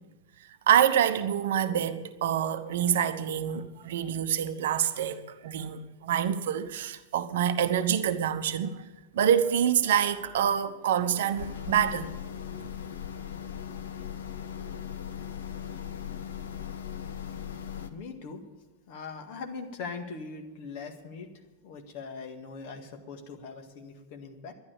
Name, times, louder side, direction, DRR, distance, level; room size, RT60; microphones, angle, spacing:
voice 1, 0.7-8.8 9.1-12.1, right 9 dB, 55° right, 0.8 m, -26 dB
sound 1, 11.4-17.9, left 9 dB, 65° left, 1.0 m, -38 dB
voice 2, 17.9-18.4 18.9-21.3 21.6-24.5, left 4 dB, 50° left, 1.8 m, -41 dB
12.0 x 10.5 x 8.3 m
figure-of-eight pair, 90°, 0 cm